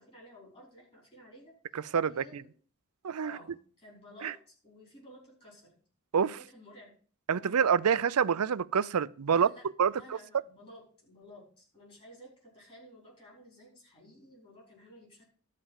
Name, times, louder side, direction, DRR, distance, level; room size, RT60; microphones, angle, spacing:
voice 1, 0.0-1.5 2.1-2.5 3.2-5.7 6.2-6.9 7.3-7.7 9.3-15.3, equal, 25° left, 5.0 m, -54 dB
voice 2, 1.7-2.4 3.0-3.4 4.2-4.3 6.1-6.4 7.3-9.5 9.8-10.2, right 7 dB, 80° right, 0.5 m, -27 dB
12.5 x 5.1 x 7.4 m
head